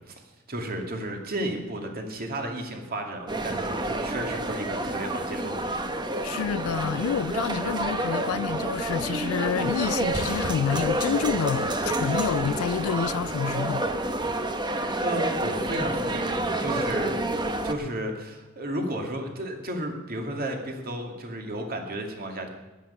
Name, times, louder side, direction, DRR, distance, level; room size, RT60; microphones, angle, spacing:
voice 1, 0.5-5.8 15.0-17.1 17.6-22.5, right 1 dB, 45° right, 2.3 m, -33 dB
sound 1, 3.3-17.7, right 2 dB, 20° right, 1.0 m, -29 dB
sound 2, 5.7-11.5, right 4 dB, 65° right, 1.1 m, -46 dB
voice 2, 6.2-13.8, left 8 dB, 80° left, 0.3 m, -28 dB
15.0 x 11.5 x 5.6 m
head